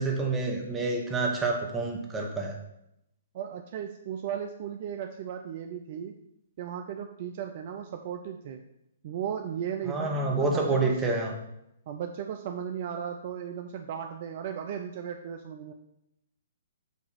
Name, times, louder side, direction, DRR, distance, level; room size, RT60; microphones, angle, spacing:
voice 1, 0.0-2.5 9.8-11.3, right 3 dB, 15° right, -1 dB, 1.3 m, -28 dB
voice 2, 3.3-6.1 6.6-8.7 9.0-10.9 11.9-15.7, right 8 dB, 45° right, 5 dB, 0.5 m, -36 dB
7.2 x 2.9 x 5.8 m, 0.82 s
figure-of-eight pair, 125°, 0 cm